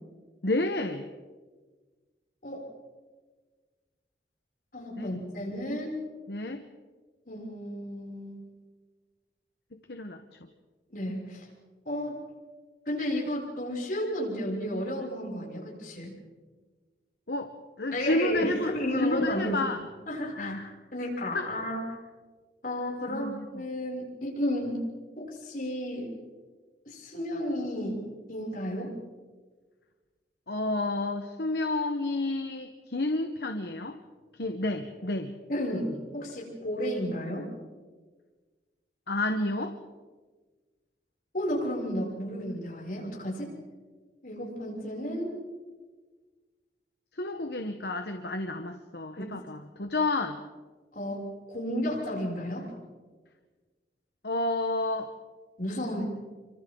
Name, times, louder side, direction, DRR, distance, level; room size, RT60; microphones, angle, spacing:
voice 1, 0.4-1.1 5.0-5.2 6.3-6.6 9.9-10.2 17.3-19.8 20.4-20.6 21.3-21.5 23.1-23.5 30.5-34.0 34.4-35.3 39.1-39.8 47.2-50.4 54.2-55.1, left 2 dB, 65° left, 6 dB, 1.2 m, -30 dB
voice 2, 4.7-6.0 7.3-8.5 10.9-11.5 11.9-12.2 12.9-16.1 17.9-19.7 20.1-20.6 20.9-21.9 22.6-24.8 25.2-26.1 26.9-28.0 28.3-28.9 35.5-37.5 41.3-43.5 44.2-45.3 49.2-49.4 50.9-52.7 55.6-56.0, equal, 50° left, -3 dB, 6.9 m, -32 dB
28.5 x 25.0 x 3.9 m, 1.4 s
head